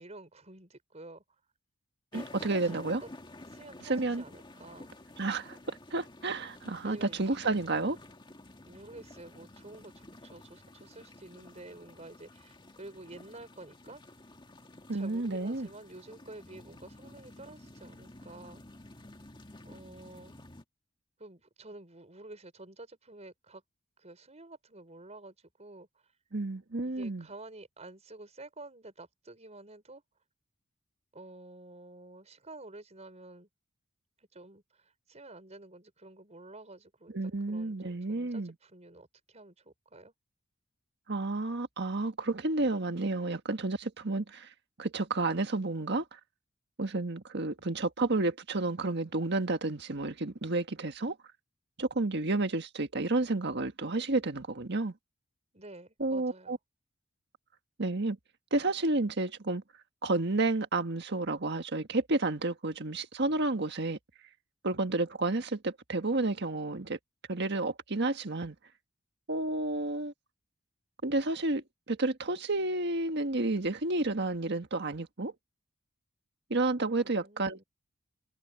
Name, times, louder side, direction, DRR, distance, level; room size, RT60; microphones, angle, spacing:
voice 1, 0.0-1.4 2.1-3.1 3.4-4.9 6.8-7.5 8.7-14.0 14.9-18.6 19.6-20.3 21.2-23.6 24.0-26.1 26.8-30.0 31.1-33.5 34.2-40.1 55.5-56.6 77.0-77.6, right 2 dB, 35° right, 5.3 m, -50 dB
sound 1, 2.1-20.6, left 2 dB, 25° left, 1.9 m, -51 dB
voice 2, 2.1-3.0 3.8-4.2 5.2-8.0 14.9-15.7 26.3-27.3 37.1-38.5 41.1-44.5 44.8-46.2 46.8-51.2 51.8-54.9 56.0-56.6 57.8-58.2 58.5-59.6 60.0-64.0 64.6-67.0 67.3-68.5 69.3-70.1 71.0-75.3 76.5-77.6, right 2 dB, 55° right, 1.6 m, -31 dB
head